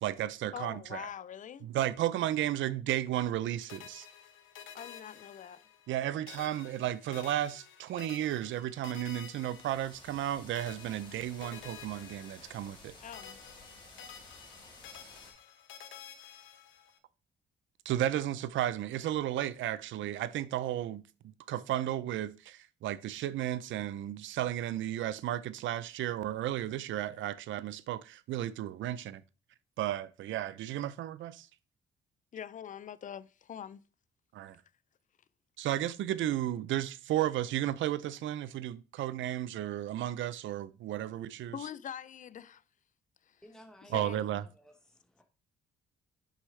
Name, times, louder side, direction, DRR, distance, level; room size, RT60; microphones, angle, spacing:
voice 1, 0.0-1.1 1.6-4.1 5.9-12.9 17.9-29.2 29.8-31.5 34.3-34.6 35.6-41.6 43.9-44.4, right 12 dB, 75° right, 0.5 m, -33 dB
voice 2, 0.5-1.7 4.7-5.6 13.0-13.4 32.3-33.8 41.5-42.6 43.2-43.4 43.8-44.2, left 9 dB, 40° left, 0.4 m, -44 dB
sound 1, 3.7-6.0 6.3-10.3 10.5-12.9 13.1-17.0, left 8 dB, 75° left, 1.0 m, -51 dB
sound 2, 9.1-15.3, left 2 dB, 25° left, 3.6 m, -54 dB
voice 3, 43.4-44.1 44.4-45.2, equal, 5° left, 1.3 m, -57 dB
6.4 x 5.5 x 3.2 m
cardioid pair, 90°, 20 cm